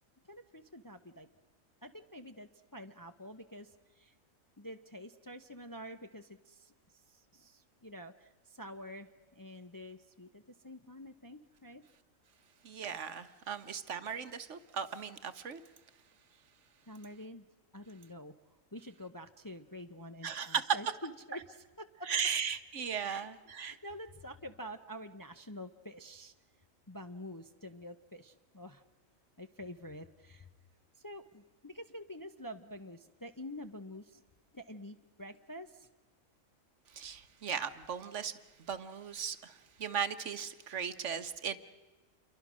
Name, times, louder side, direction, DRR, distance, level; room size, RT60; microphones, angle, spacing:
voice 1, 0.3-1.3 1.8-4.1 4.6-11.8 13.5-13.6 16.9-17.4 17.7-18.3 18.7-22.1 23.0-23.3 23.6-26.3 26.9-28.8 29.4-30.5 31.0-34.2 34.5-35.9, equal, 20° left, 0.6 m, -48 dB
voice 2, 12.6-15.6 20.2-20.8 22.1-23.7 36.9-38.3 38.7-41.6, right 7 dB, 60° right, 1.3 m, -37 dB
28.5 x 23.5 x 6.3 m
omnidirectional pair, 1.4 m